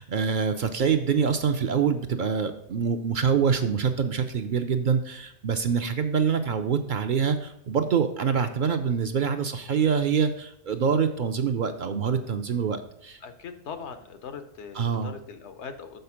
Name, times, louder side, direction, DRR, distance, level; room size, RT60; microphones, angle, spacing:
voice 1, 0.0-13.2 14.8-15.1, right 6 dB, 60° right, 7 dB, 0.6 m, -25 dB
voice 2, 13.2-16.0, left 6 dB, 85° left, 8 dB, 1.1 m, -40 dB
6.7 x 4.2 x 5.7 m, 0.72 s
omnidirectional pair, 1.1 m